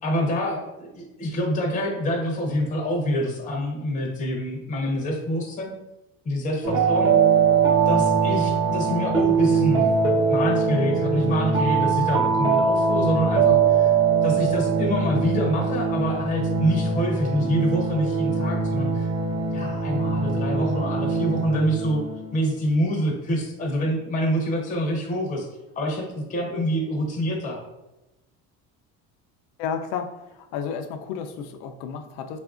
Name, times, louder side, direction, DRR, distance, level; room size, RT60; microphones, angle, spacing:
voice 1, 0.0-5.7 6.2-7.1 7.9-10.0 10.3-13.9 14.2-19.1 19.5-22.0 22.3-25.5 25.8-27.6, equal, 25° left, 0 dB, 0.6 m, -26 dB
sound 1, 6.6-22.3, right 5 dB, 45° right, 0.9 m, -22 dB
voice 2, 29.6-32.4, left 7 dB, 85° left, 7 dB, 0.5 m, -32 dB
3.5 x 2.4 x 2.4 m, 0.98 s
cardioid pair, 130°, 32 cm